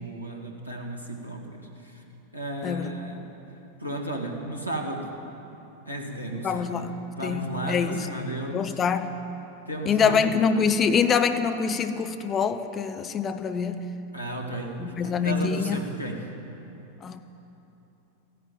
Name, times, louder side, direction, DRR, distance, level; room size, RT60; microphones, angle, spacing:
voice 1, 0.0-2.0 2.3-3.3 3.8-5.1 5.9-9.1 9.7-10.4 14.1-16.3, right 1 dB, 90° left, 0 dB, 1.8 m, -34 dB
voice 2, 6.4-8.0 8.5-9.2 9.9-13.9 14.8-15.8 17.0-17.2, left 6 dB, 25° left, 8 dB, 0.8 m, -25 dB
14.5 x 11.0 x 8.9 m, 2.9 s
figure-of-eight pair, 90°, 0 cm